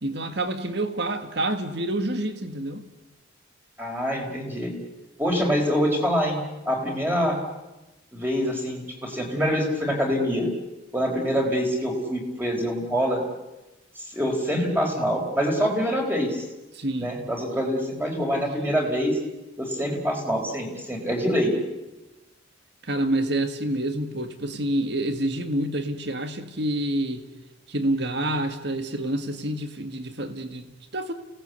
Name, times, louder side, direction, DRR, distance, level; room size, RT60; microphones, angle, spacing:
voice 1, 0.0-2.8 16.7-17.2 22.8-27.3 27.7-31.1, right 1 dB, 55° right, 8 dB, 1.8 m, -28 dB
voice 2, 3.8-4.7 5.2-6.4 6.7-7.4 8.1-10.5 10.9-13.2 14.0-16.4 17.0-19.2 19.6-21.5, equal, 10° right, 1 dB, 4.6 m, -25 dB
29.5 x 18.5 x 8.3 m, 1.1 s
head